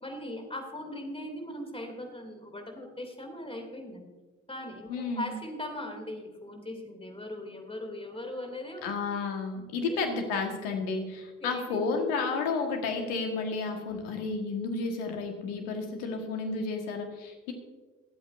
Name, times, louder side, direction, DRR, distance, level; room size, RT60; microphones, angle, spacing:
voice 1, 0.0-4.1 4.5-8.9 9.9-10.0 11.4-11.9, left 1 dB, 15° left, 3 dB, 2.9 m, -39 dB
voice 2, 4.9-5.3 8.8-17.5, left 4 dB, 70° left, 4 dB, 1.8 m, -32 dB
23.0 x 8.4 x 2.7 m, 1.3 s
figure-of-eight pair, 50°, 37 cm